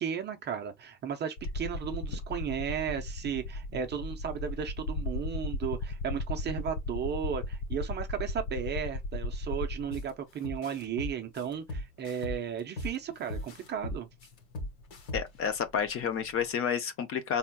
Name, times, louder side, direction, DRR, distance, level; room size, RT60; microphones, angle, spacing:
voice 1, 0.0-14.1, right 8 dB, 25° right, 0.4 m, -35 dB
sound 1, 1.4-10.1 11.3-11.4 13.5-13.6 13.8-16.4, left 2 dB, 70° left, 1.0 m, -36 dB
sound 2, 9.9-10.1 10.4-13.0 13.3-15.5, left 1 dB, 55° left, 1.7 m, -37 dB
voice 2, 15.1-17.4, left 7 dB, 30° left, 0.5 m, -30 dB
4.2 x 3.5 x 2.2 m
supercardioid pair, 115°, 46 cm